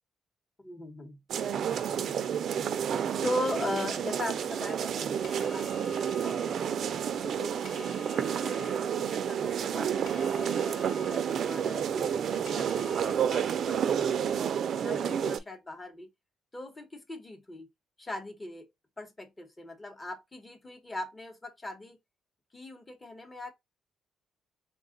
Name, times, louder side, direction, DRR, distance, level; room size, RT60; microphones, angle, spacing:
voice 1, 0.6-1.2 2.4-6.9 7.2-14.3 14.8-16.1 16.5-17.7 18.0-18.7 19.0-22.0 22.5-23.5, left 1 dB, 20° left, 0.9 m, -40 dB
sound 1, 1.3-15.4, right 8 dB, 60° right, 0.4 m, -30 dB
sound 2, 4.1-13.2, left 3 dB, 60° left, 0.8 m, -50 dB
3.5 x 2.3 x 3.7 m
cardioid pair, 110°, 0 cm